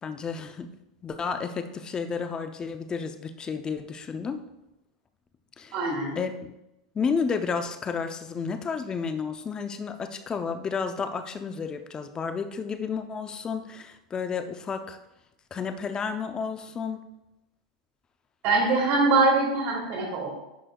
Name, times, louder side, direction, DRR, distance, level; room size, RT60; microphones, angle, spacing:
voice 1, 0.0-0.7 1.0-4.4 5.6-5.7 6.2-6.3 6.9-15.0 15.5-17.0, left 5 dB, 25° left, 8 dB, 0.6 m, -31 dB
voice 2, 5.7-6.2 18.4-20.3, right 3 dB, 50° right, -1 dB, 2.3 m, -23 dB
10.0 x 5.0 x 2.3 m, 0.92 s
hypercardioid pair, 105°, 3 cm